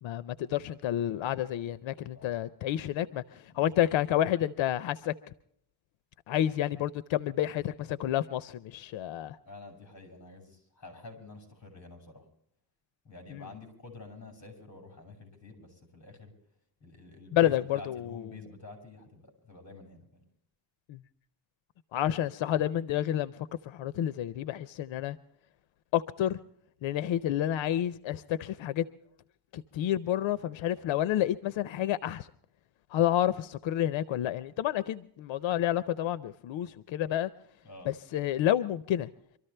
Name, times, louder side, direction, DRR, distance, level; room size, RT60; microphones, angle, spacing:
voice 1, 0.0-5.1 6.3-9.4 13.3-13.5 17.3-18.2 20.9-21.0 21.9-25.2 25.9-26.4 26.8-28.8 29.5-32.3 32.9-37.3 37.9-39.1, left 12 dB, 90° left, 14 dB, 0.7 m, -29 dB
voice 2, 3.5-3.9 9.4-12.3 13.0-16.3 16.8-20.3 30.7-30.9 37.6-37.9, left 3 dB, 35° left, 4 dB, 6.0 m, -49 dB
25.0 x 13.5 x 3.3 m, 0.69 s
cardioid pair, 125°, 45 cm